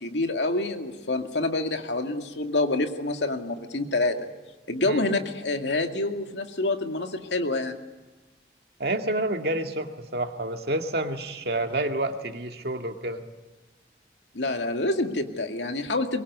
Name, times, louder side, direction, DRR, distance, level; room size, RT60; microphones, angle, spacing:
voice 1, 0.0-4.2 4.7-7.8 14.3-16.2, left 2 dB, 90° left, 5 dB, 2.3 m, -27 dB
voice 2, 8.8-13.2, right 1 dB, 60° right, 5 dB, 2.1 m, -29 dB
23.5 x 23.0 x 9.6 m, 1.1 s
head